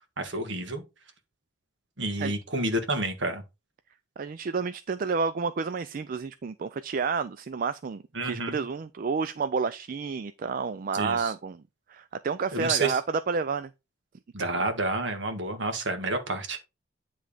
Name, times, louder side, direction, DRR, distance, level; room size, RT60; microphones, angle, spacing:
voice 1, 0.2-0.8 2.0-3.4 8.1-8.6 10.9-11.3 12.5-13.0 14.3-16.6, right 2 dB, 65° right, 1.6 m, -29 dB
voice 2, 4.2-11.6 11.9-13.7, right 5 dB, 45° right, 0.4 m, -30 dB
9.5 x 3.5 x 5.0 m
head